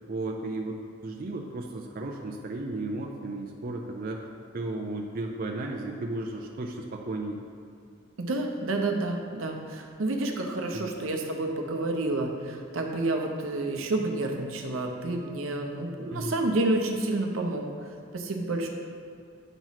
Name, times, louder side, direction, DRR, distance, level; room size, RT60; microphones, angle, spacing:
voice 1, 0.1-4.2 4.5-7.4 10.7-10.9 16.1-16.4, right 2 dB, 45° right, 0 dB, 0.5 m, -34 dB
voice 2, 8.2-17.6 18.1-18.7, right 2 dB, 85° right, 2 dB, 0.8 m, -29 dB
8.9 x 3.1 x 5.6 m, 2.3 s
head